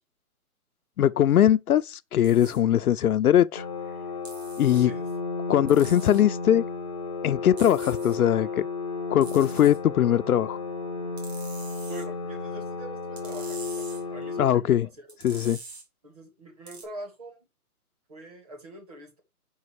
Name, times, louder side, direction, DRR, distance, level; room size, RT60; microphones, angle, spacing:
voice 1, 1.0-3.6 4.6-4.9 5.5-6.6 7.2-8.6 9.1-10.6 14.4-14.9 15.2-15.6, left 10 dB, 75° left, 0.5 m, -21 dB
sound 1, 2.2-2.6 4.2-4.8 5.7-6.2 7.6-8.2 9.2-9.8 11.2-12.0 13.2-14.0 15.1-15.8 16.7-16.8, right 4 dB, 45° right, 2.8 m, -44 dB
sound 2, 3.6-14.5, left 4 dB, 25° left, 0.5 m, -33 dB
voice 2, 4.7-5.1 11.9-15.4 16.0-17.5 18.1-19.2, right 1 dB, 25° right, 1.6 m, -44 dB
5.5 x 5.2 x 4.8 m
hypercardioid pair, 170°, 45 cm